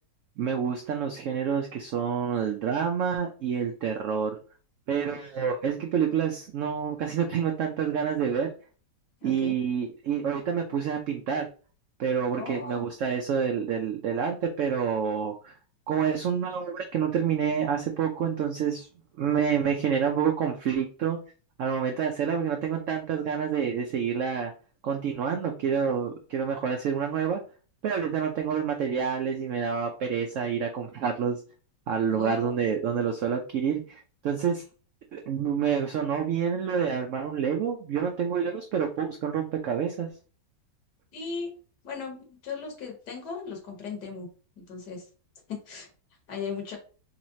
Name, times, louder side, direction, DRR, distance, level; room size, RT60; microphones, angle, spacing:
voice 1, 0.4-4.4 4.9-8.5 9.2-11.5 12.0-15.5 15.9-18.9 19.2-21.2 21.6-24.5 24.8-27.4 27.8-31.4 31.9-34.6 35.1-40.1, right 7 dB, 85° right, 3 dB, 0.6 m, -28 dB
voice 2, 9.2-9.5 12.4-12.8 32.1-32.5 41.1-41.5 41.8-44.3 44.6-45.1 45.5-45.9 46.3-46.8, left 5 dB, 70° left, 2 dB, 1.7 m, -37 dB
4.0 x 3.0 x 2.6 m, 0.38 s
omnidirectional pair, 1.9 m